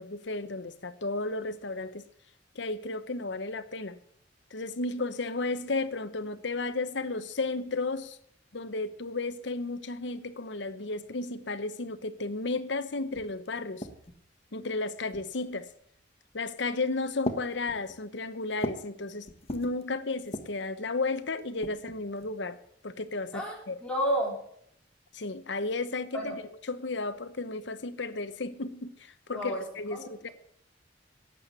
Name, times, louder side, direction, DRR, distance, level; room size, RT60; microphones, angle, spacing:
voice 1, 0.0-2.0 2.5-4.0 4.5-8.2 8.5-13.9 14.5-15.7 16.3-23.8 25.1-26.4 26.6-30.3, left 3 dB, 65° left, 0.9 m, -33 dB
sound 1, 13.1-14.3 15.1-15.6 16.4-16.8 17.2-19.0 19.3-19.8 20.2-20.7 21.4-22.4, left 1 dB, 30° left, 1.2 m, -39 dB
voice 2, 23.3-24.4 26.1-26.4 29.3-29.6 29.9-30.1, equal, 5° left, 4.0 m, -31 dB
11.5 x 8.4 x 8.2 m
head